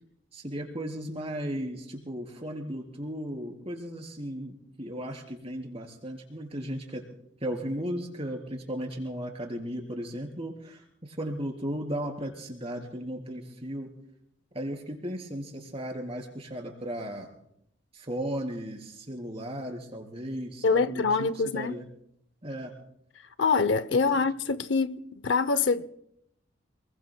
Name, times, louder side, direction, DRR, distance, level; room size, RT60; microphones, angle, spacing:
voice 1, 0.3-7.0 7.4-13.9 14.5-17.3 17.9-21.8 22.4-22.7, equal, 30° right, 3.5 m, -36 dB
voice 2, 20.6-21.8 23.4-25.9, left 4 dB, 70° left, 0.6 m, -25 dB
28.5 x 21.5 x 2.2 m
head